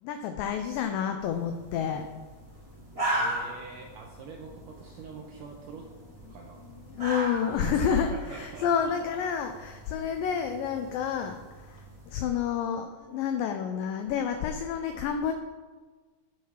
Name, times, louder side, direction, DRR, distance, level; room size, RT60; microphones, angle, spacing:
voice 1, 0.0-2.1 6.3-6.4 6.7-15.3, left 7 dB, 90° left, 6 dB, 1.9 m, -29 dB
sound 1, 1.2-12.1, right 1 dB, 40° right, 0.4 m, -38 dB
voice 2, 3.1-5.9 6.3-6.6 7.5-8.9, right 5 dB, 80° right, 1 dB, 1.9 m, -44 dB
10.5 x 4.6 x 5.7 m, 1.4 s
omnidirectional pair, 4.6 m